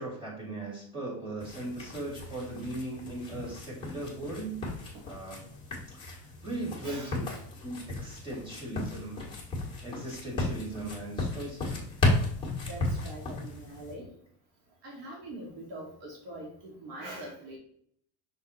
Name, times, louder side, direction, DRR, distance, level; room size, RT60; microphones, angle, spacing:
voice 1, 0.0-4.7 5.0-5.4 5.9-7.3 7.6-9.2 9.8-11.8, right 2 dB, 10° right, -4 dB, 2.3 m, -38 dB
sound 1, 1.4-13.9, left 2 dB, 10° left, 1.6 m, -34 dB
voice 2, 6.8-7.4 12.7-14.1 14.8-17.6, right 1 dB, 85° right, -2 dB, 2.3 m, -43 dB
6.1 x 3.9 x 4.2 m, 0.65 s
cardioid pair, 165°, 46 cm